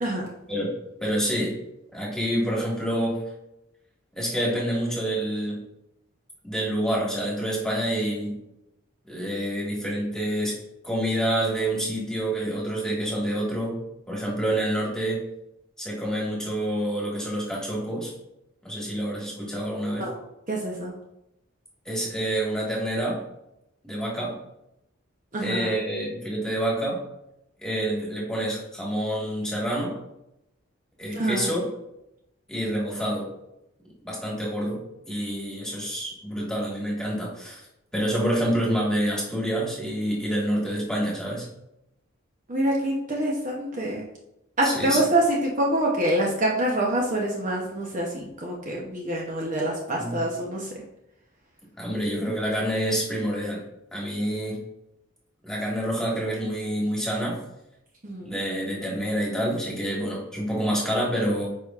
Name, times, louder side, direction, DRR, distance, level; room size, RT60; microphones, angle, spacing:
voice 1, 1.0-1.6 1.9-3.2 4.1-5.6 6.4-8.4 9.1-10.5 10.8-13.8 14.1-15.2 15.8-18.1 18.6-20.1 21.8-23.2 23.8-24.4 25.4-27.0 27.6-30.0 31.0-31.6 32.5-33.3 34.0-37.6 37.9-41.4 44.6-45.0 50.0-50.2 51.8-53.6 53.9-54.6 55.4-57.4 58.2-61.5, right 1 dB, 5° left, -5 dB, 1.7 m, -27 dB
voice 2, 20.5-20.9 25.3-25.7 31.1-31.5 42.5-44.0 44.6-50.7 58.0-58.3, right 1 dB, 40° right, -3 dB, 0.9 m, -26 dB
9.9 x 4.8 x 2.5 m, 0.87 s
head